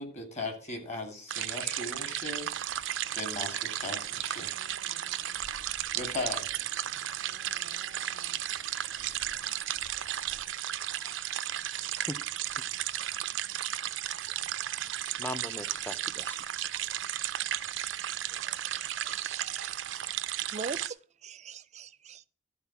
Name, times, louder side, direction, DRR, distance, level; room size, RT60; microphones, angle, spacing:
voice 1, 0.0-2.5 3.1-4.5 5.9-6.5, left 2 dB, 40° left, 2.3 m, -38 dB
sound 1, 1.3-20.9, right 12 dB, 85° right, 0.5 m, -34 dB
sound 2, 2.5-10.5, left 1 dB, 70° left, 1.8 m, -54 dB
voice 2, 10.8-11.5 11.8-12.2 12.6-13.2 13.6-13.7 14.8-16.4, left 1 dB, 10° left, 0.6 m, -43 dB
voice 3, 18.3-19.9 20.5-22.3, right 5 dB, 40° right, 0.5 m, -43 dB
12.0 x 4.0 x 7.1 m
head